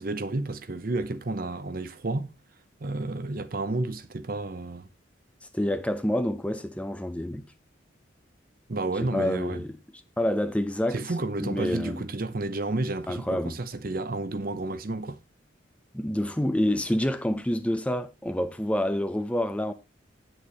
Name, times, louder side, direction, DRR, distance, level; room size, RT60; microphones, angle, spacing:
voice 1, 0.0-2.3 2.8-4.9 8.7-9.7 10.9-15.2, right 2 dB, 50° right, 0.7 m, -31 dB
voice 2, 5.5-7.4 9.1-9.8 10.2-11.0 11.4-12.1 13.1-13.6 15.9-19.7, left 1 dB, 5° left, 0.7 m, -27 dB
8.4 x 7.8 x 4.1 m
head